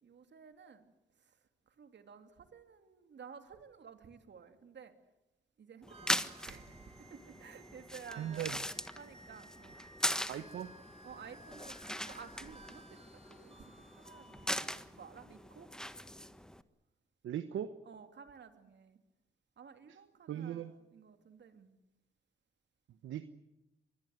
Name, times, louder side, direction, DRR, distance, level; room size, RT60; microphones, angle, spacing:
voice 1, 0.0-5.0 5.6-8.7 9.0-9.9 11.0-15.7 17.8-19.0 19.6-21.7, right 6 dB, 65° right, 7 dB, 3.0 m, -54 dB
sound 1, 5.8-16.6, equal, 5° left, 1.5 m, -40 dB
sound 2, 5.9-14.6, right 1 dB, 30° right, 4.5 m, -58 dB
voice 2, 8.2-8.6 10.3-10.7 17.2-17.8 20.3-20.7 23.0-23.2, right 10 dB, 80° right, 11 dB, 1.1 m, -38 dB
25.0 x 21.0 x 8.0 m, 0.97 s
supercardioid pair, 50°, 20 cm